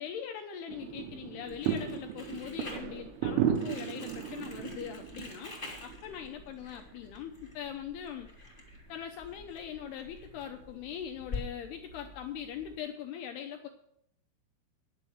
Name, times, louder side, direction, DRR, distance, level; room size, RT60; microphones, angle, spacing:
voice 1, 0.0-5.6 5.8-8.3 8.9-13.7, left 9 dB, 80° left, 4 dB, 2.3 m, -41 dB
sound 1, 0.7-12.8, right 9 dB, 80° right, 3.3 m, -37 dB
Crumpling crinkling, 1.5-11.4, left 3 dB, 20° left, 1.6 m, -47 dB
10.0 x 7.4 x 7.7 m, 0.73 s
omnidirectional pair, 5.5 m